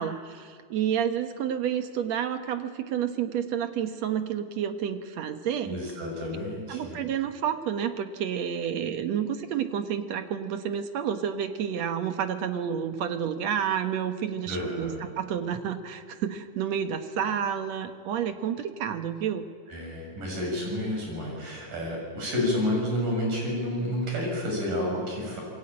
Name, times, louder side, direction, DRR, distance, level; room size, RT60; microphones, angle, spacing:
voice 1, 0.0-5.8 6.7-19.5, right 8 dB, 65° right, 8 dB, 2.2 m, -30 dB
voice 2, 5.6-7.0 14.5-15.1 19.7-25.4, left 1 dB, 85° right, 0 dB, 8.7 m, -30 dB
27.0 x 22.0 x 8.9 m, 2.1 s
omnidirectional pair, 3.7 m